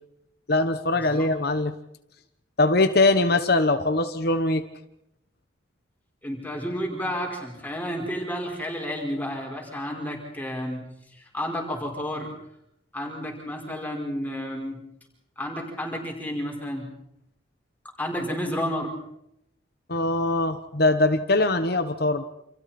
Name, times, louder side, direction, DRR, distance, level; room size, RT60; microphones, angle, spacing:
voice 1, 0.5-1.7 2.6-4.6 19.9-22.2, left 2 dB, 50° left, 8 dB, 1.2 m, -22 dB
voice 2, 6.2-10.8 11.1-12.3 12.9-14.8 15.4-16.9 18.0-18.9, equal, 10° left, 0 dB, 5.0 m, -31 dB
29.0 x 27.5 x 4.4 m, 0.79 s
head